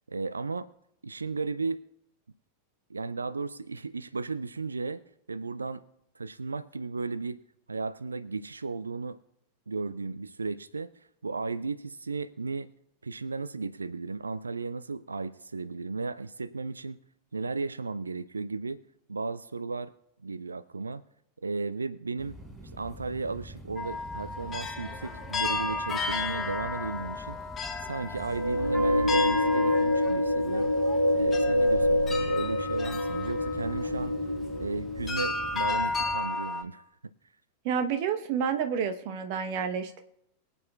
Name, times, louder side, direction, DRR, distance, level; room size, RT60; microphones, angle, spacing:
voice 1, 0.1-0.7 1.0-1.8 2.9-5.8 6.2-7.4 7.7-9.2 9.7-12.7 13.0-17.0 17.3-18.8 19.1-19.9 20.2-21.0 21.4-22.4 22.7-27.4 27.8-30.7 31.1-34.2 34.6-37.1, right 4 dB, 75° right, 15 dB, 0.4 m, -35 dB
sound 1, 22.2-36.2, right 2 dB, 15° right, 5.0 m, -44 dB
sound 2, 23.8-34.3 35.1-36.6, left 3 dB, 20° left, 1.5 m, -34 dB
sound 3, 28.3-35.6, left 1 dB, 90° left, 0.7 m, -26 dB
voice 2, 37.6-40.0, right 7 dB, 45° right, 8 dB, 1.0 m, -29 dB
23.0 x 8.3 x 2.3 m, 0.79 s
figure-of-eight pair, 90°, 0 cm